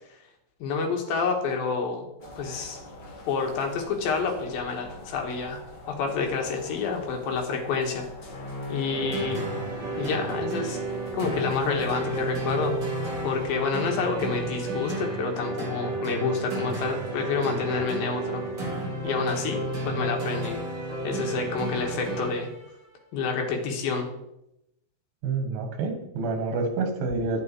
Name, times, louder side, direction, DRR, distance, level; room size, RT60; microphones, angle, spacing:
voice 1, 0.6-2.1 2.4-2.8 3.3-5.6 5.9-8.1 8.7-9.5 10.0-10.8 11.1-12.8 13.2-18.4 19.0-20.6 21.0-22.5 23.1-24.1, left 5 dB, 80° left, 2 dB, 3.5 m, -28 dB
sound 1, 2.2-13.5, left 2 dB, 40° left, 1.8 m, -42 dB
sound 2, 8.9-22.7, right 2 dB, 35° right, 2.6 m, -32 dB
voice 2, 25.2-27.4, right 3 dB, 85° right, 5 dB, 3.5 m, -28 dB
11.0 x 9.2 x 4.5 m, 0.84 s
omnidirectional pair, 4.1 m